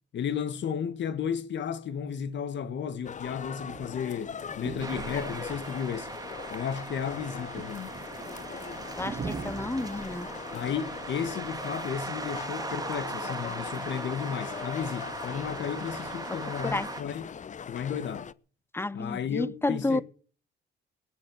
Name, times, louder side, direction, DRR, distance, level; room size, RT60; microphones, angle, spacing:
voice 1, 0.1-6.1 6.5-7.9 10.5-17.3 17.7-18.3 18.9-20.0, left 8 dB, 65° left, 1.8 m, -33 dB
sound 1, 3.0-18.3, left 7 dB, 40° left, 0.8 m, -41 dB
sound 2, 3.2-13.2 13.9-16.7, right 5 dB, 35° right, 2.5 m, -45 dB
sound 3, 4.8-17.0, right 3 dB, 20° right, 2.0 m, -39 dB
voice 2, 9.0-10.3 16.6-16.9 18.7-20.0, left 2 dB, 10° left, 0.8 m, -30 dB
21.0 x 10.5 x 6.3 m
cardioid pair, 90°, 20 cm